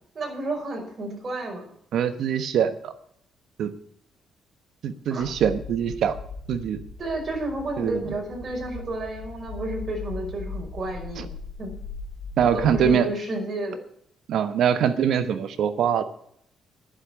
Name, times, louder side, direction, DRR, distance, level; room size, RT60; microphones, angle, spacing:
voice 1, 0.1-1.7 5.1-5.2 7.0-11.7 12.5-13.8, right 2 dB, 40° right, 1 dB, 5.4 m, -31 dB
voice 2, 1.9-2.9 3.6-3.7 4.8-6.2 6.5-6.8 7.8-8.0 11.2-11.3 12.4-13.1 14.3-16.0, right 8 dB, 70° right, 11 dB, 1.1 m, -23 dB
sound 1, 5.2-12.9, left 4 dB, 85° left, 3.5 m, -38 dB
11.0 x 7.6 x 9.0 m, 0.67 s
cardioid pair, 90°, 0 cm